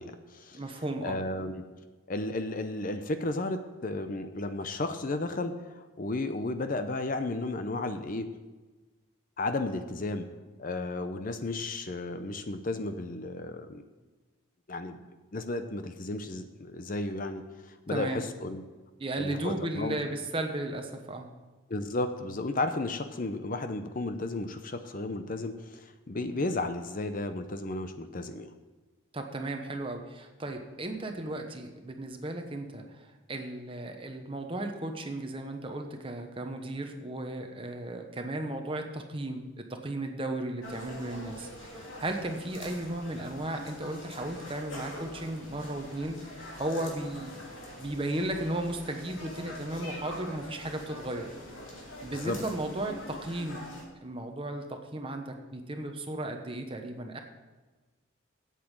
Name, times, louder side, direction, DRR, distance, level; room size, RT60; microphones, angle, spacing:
voice 1, 0.0-0.6 1.0-1.7 2.1-8.3 9.4-10.3 10.6-13.8 14.7-15.0 15.3-18.6 19.2-20.0 21.7-28.5 52.2-52.4, left 2 dB, 40° left, 9 dB, 0.6 m, -33 dB
voice 2, 0.5-1.2 17.9-18.2 19.0-21.3 29.1-47.4 47.8-51.3 52.0-53.7 54.0-57.2, right 1 dB, 25° right, 4 dB, 1.0 m, -35 dB
sound 1, 40.6-53.8, left 1 dB, 70° left, 2.9 m, -44 dB
8.5 x 8.3 x 7.3 m, 1.3 s
head